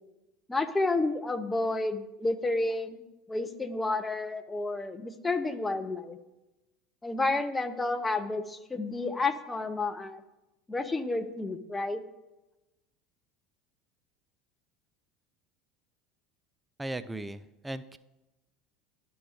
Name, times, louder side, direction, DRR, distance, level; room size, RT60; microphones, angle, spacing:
voice 1, 0.5-3.0 3.3-6.2 7.0-10.2 10.7-12.0, left 2 dB, 15° left, 9 dB, 0.7 m, -30 dB
voice 2, 16.8-18.0, right 1 dB, 10° right, 12 dB, 0.4 m, -37 dB
11.0 x 3.9 x 5.1 m, 1.0 s
hypercardioid pair, 75°, 0 cm